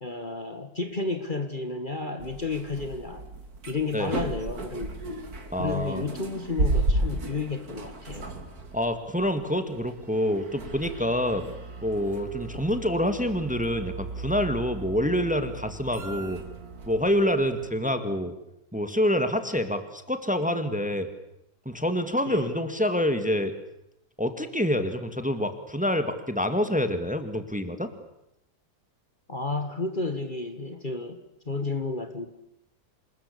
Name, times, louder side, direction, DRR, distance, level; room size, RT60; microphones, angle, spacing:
voice 1, 0.0-3.3 3.7-4.9 5.6-8.3 22.3-22.5 29.3-31.2 31.5-32.3, left 3 dB, 30° left, 7 dB, 1.8 m, -32 dB
sound 1, 2.2-17.7, right 2 dB, 70° right, 2.9 m, -34 dB
voice 2, 5.5-6.0 8.7-11.5 11.8-16.4 16.9-18.3 18.7-21.1 21.7-23.5 24.2-27.9, equal, 5° right, 8 dB, 2.1 m, -27 dB
27.5 x 21.0 x 8.6 m, 0.84 s
omnidirectional pair, 1.6 m